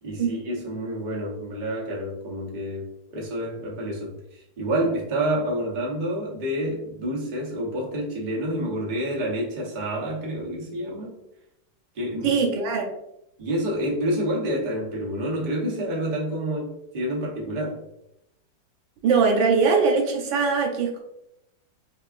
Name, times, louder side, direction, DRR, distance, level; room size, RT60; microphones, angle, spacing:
voice 1, 0.0-11.2 11.9-12.4 13.4-17.8, right 1 dB, 30° right, -3 dB, 0.9 m, -28 dB
voice 2, 12.2-12.9 19.0-21.0, right 5 dB, 85° right, 2 dB, 1.5 m, -21 dB
5.8 x 2.5 x 2.5 m, 0.80 s
omnidirectional pair, 2.0 m